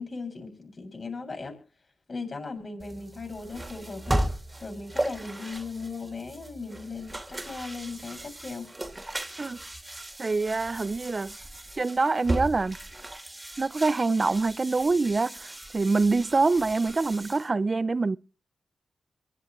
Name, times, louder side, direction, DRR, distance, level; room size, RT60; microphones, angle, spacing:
voice 1, 0.0-1.6 2.1-4.3 4.6-8.7, left 4 dB, 50° left, 6.9 m, -38 dB
sound 1, 2.8-17.5, right 1 dB, 25° right, 2.4 m, -36 dB
voice 2, 10.2-11.4 11.8-12.8 13.6-18.2, right 3 dB, 45° right, 0.6 m, -25 dB
24.5 x 10.5 x 3.1 m
supercardioid pair, 40°, 0 cm